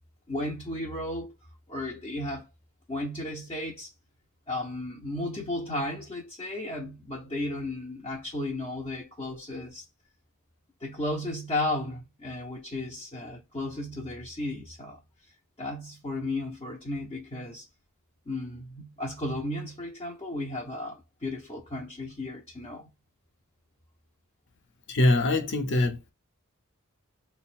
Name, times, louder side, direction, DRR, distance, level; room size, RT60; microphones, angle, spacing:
voice 1, 0.3-1.3 1.7-2.5 2.9-3.9 4.5-9.9 10.8-15.0 15.6-17.7 18.3-22.9, left 1 dB, 25° left, 0.6 m, -34 dB
voice 2, 24.9-26.1, left 2 dB, 55° left, 0.8 m, -23 dB
3.4 x 2.1 x 4.3 m
head